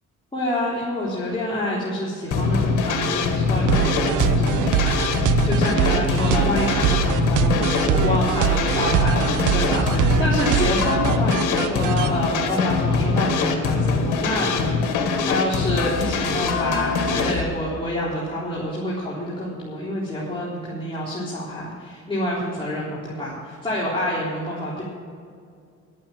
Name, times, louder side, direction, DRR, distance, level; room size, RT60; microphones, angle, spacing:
voice 1, 0.3-24.8, left 1 dB, 15° left, -8 dB, 3.8 m, -27 dB
sound 1, 2.3-17.4, left 4 dB, 85° left, 1.6 m, -23 dB
sound 2, 3.7-12.1, right 10 dB, 80° right, 0.8 m, -23 dB
12.0 x 8.7 x 7.6 m, 2.3 s
cardioid pair, 90°, 30 cm